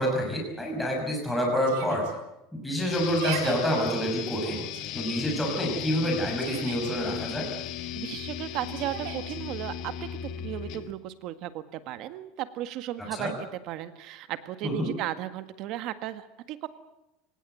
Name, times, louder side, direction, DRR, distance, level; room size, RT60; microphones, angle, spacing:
voice 1, 0.0-2.0 2.5-4.6 4.9-7.5 13.1-13.3 14.6-14.9, equal, 5° left, -1 dB, 6.0 m, -27 dB
Yell, 1.7-2.1 3.0-3.6 4.3-4.8 6.0-6.9 8.8-9.4, right 8 dB, 70° right, 4.2 m, -37 dB
sound 1, 2.9-10.9, left 10 dB, 45° left, 1.9 m, -37 dB
voice 2, 8.0-10.1 10.4-13.3 13.7-16.7, right 13 dB, 45° right, 11 dB, 1.8 m, -35 dB
24.5 x 19.5 x 7.9 m, 0.90 s
supercardioid pair, 170°, 0 cm